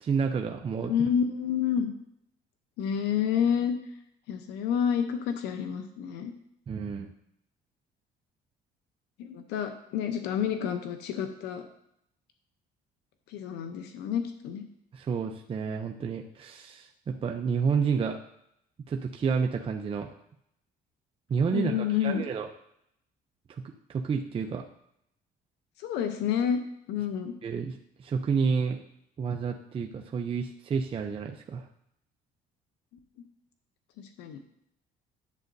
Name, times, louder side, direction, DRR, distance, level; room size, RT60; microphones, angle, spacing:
voice 1, 0.0-0.9 6.7-7.1 14.9-18.2 18.9-20.1 21.3-22.5 23.5-23.6 23.9-24.6 27.4-27.7 28.0-28.8 29.2-31.6, right 5 dB, 35° right, 3 dB, 0.6 m, -30 dB
voice 2, 0.8-1.9 2.8-3.7 4.3-6.3 9.2-11.6 13.3-14.6 21.5-22.2 25.8-26.6 26.9-27.3 34.0-34.4, left 8 dB, 90° left, 7 dB, 0.8 m, -29 dB
10.5 x 7.6 x 2.7 m, 0.75 s
cardioid pair, 110°, 17 cm